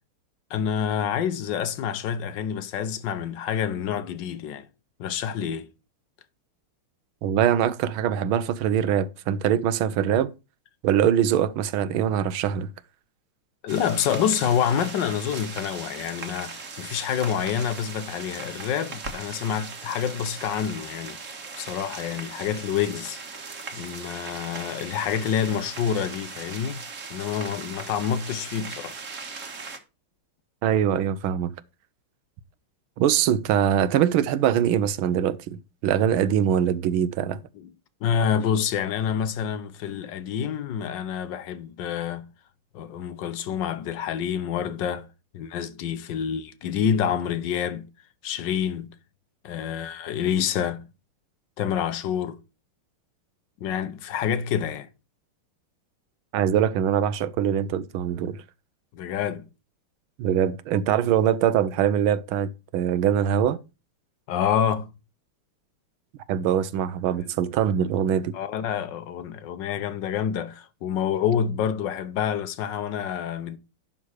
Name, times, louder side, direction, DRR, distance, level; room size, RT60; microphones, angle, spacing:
voice 1, 0.5-4.7 5.0-5.7 13.6-21.2 21.6-23.2 23.7-26.8 27.1-29.0 37.6-37.7 38.0-42.3 42.7-45.1 45.3-47.9 48.2-48.9 49.4-50.9 51.6-52.4 53.6-54.9 58.9-59.5 64.3-64.9 67.2-67.3 68.3-73.6, left 8 dB, 65° left, 1.3 m, -27 dB
voice 2, 7.2-10.3 10.8-12.7 30.6-31.5 33.0-37.4 56.3-58.4 60.2-63.6 66.3-68.3, right 9 dB, 75° right, 1.5 m, -23 dB
sound 1, 13.7-29.8, right 4 dB, 40° right, 1.5 m, -39 dB
11.0 x 3.8 x 6.3 m
omnidirectional pair, 2.4 m